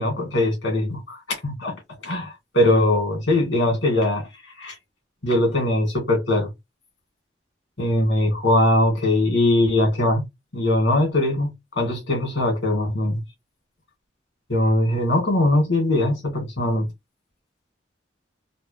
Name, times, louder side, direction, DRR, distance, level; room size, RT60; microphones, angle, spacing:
voice 1, 0.0-1.8 2.0-4.3 4.6-4.8 5.2-6.5 7.8-10.2 10.5-11.5 11.8-13.2 14.5-16.9, left 1 dB, 85° left, 2.2 m, -21 dB
3.9 x 2.2 x 3.3 m
head